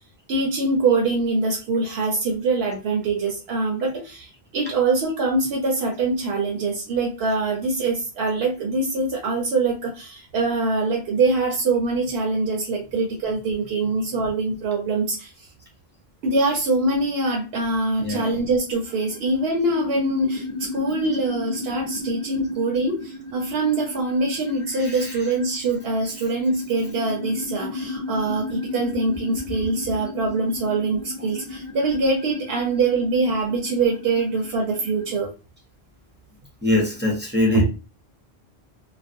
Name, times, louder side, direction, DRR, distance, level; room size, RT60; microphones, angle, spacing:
voice 1, 0.3-15.3 16.2-35.3 37.5-37.7, right 3 dB, 75° right, 0 dB, 0.8 m, -24 dB
voice 2, 18.0-18.4 24.7-25.3 26.0-26.1 36.6-37.7, left 1 dB, 15° right, -2 dB, 0.5 m, -23 dB
sound 1, 18.7-35.0, left 2 dB, 35° left, 0.6 m, -35 dB
2.4 x 2.0 x 2.5 m, 0.31 s
omnidirectional pair, 1.1 m